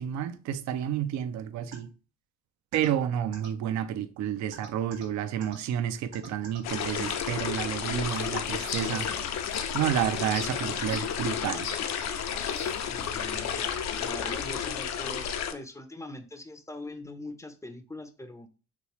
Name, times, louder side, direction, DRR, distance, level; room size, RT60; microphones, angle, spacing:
voice 1, 0.0-1.9 2.7-9.1 9.7-11.7, right 10 dB, 60° right, 0.5 m, -30 dB
sound 1, 1.7-1.8 2.7-2.9 3.3-3.5 4.5-5.0 5.4-5.5 6.1-6.6 7.0-7.2 8.1-8.3, right 3 dB, 85° right, 1.3 m, -44 dB
sound 2, 6.6-15.5, left 8 dB, 55° left, 0.6 m, -32 dB
sound 3, 8.0-13.1, left 6 dB, 70° left, 1.0 m, -43 dB
voice 2, 12.9-13.6 14.0-18.5, left 1 dB, 10° left, 0.5 m, -42 dB
3.0 x 3.0 x 3.0 m
supercardioid pair, 60°, 33 cm